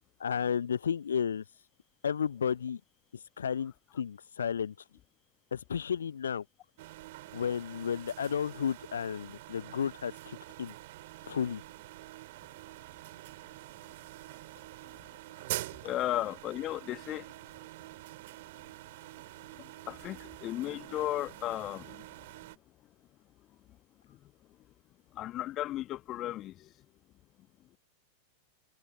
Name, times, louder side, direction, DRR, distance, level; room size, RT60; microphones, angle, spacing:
voice 1, 0.2-1.4 2.0-2.8 3.1-4.9 5.5-6.4 7.3-10.7 11.2-11.6, left 7 dB, 70° left, 0.5 m, -33 dB
sound 1, 6.8-22.6, right 18 dB, 50° right, 2.6 m, -46 dB
voice 2, 15.8-17.3 19.5-22.1 24.1-24.3 25.1-26.7, left 14 dB, 35° left, 1.2 m, -35 dB
figure-of-eight pair, 90°, 0 cm